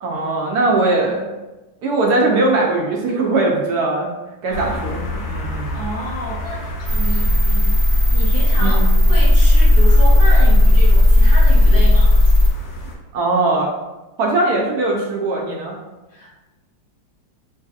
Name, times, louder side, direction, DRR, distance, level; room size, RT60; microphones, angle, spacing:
voice 1, 0.0-1.3 1.8-4.1 4.4-5.8 8.6-8.9 13.1-13.7 14.2-15.8, right 2 dB, 70° right, -1 dB, 0.9 m, -20 dB
sound 1, 4.5-12.9, equal, 65° left, 0.8 m, -30 dB
voice 2, 4.5-5.0 5.7-7.7 8.1-12.2 16.1-16.3, equal, 35° left, -10 dB, 0.9 m, -30 dB
sound 2, 6.9-12.5, left 1 dB, 50° right, 1.1 m, -13 dB
3.0 x 2.7 x 2.3 m, 1.1 s
omnidirectional pair, 2.0 m